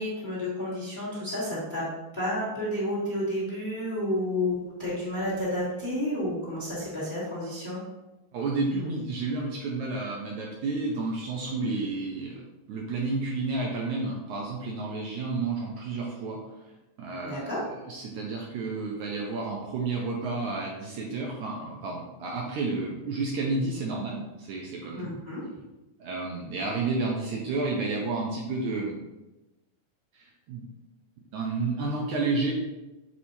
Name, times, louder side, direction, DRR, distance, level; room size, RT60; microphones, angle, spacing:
voice 1, 0.0-1.8 2.1-7.8 17.2-17.6 24.9-25.4, left 1 dB, 20° left, -8 dB, 1.7 m, -31 dB
voice 2, 8.3-16.7 17.0-25.1 26.0-29.0 30.1-30.6 31.3-32.5, right 3 dB, 75° right, -2 dB, 1.9 m, -31 dB
7.2 x 4.9 x 2.7 m, 1.0 s
omnidirectional pair, 3.9 m